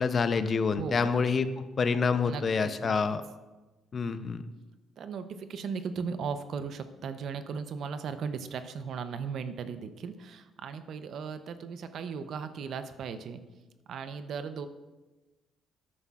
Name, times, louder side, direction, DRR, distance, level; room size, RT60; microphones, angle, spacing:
voice 1, 0.0-3.2 3.9-4.4, left 5 dB, 40° left, 11 dB, 0.6 m, -27 dB
voice 2, 0.8-1.1 2.3-3.0 5.0-13.4 13.9-14.7, right 6 dB, 65° right, 10 dB, 0.7 m, -37 dB
13.0 x 9.5 x 2.5 m, 1.1 s
cardioid pair, 85°, 0 cm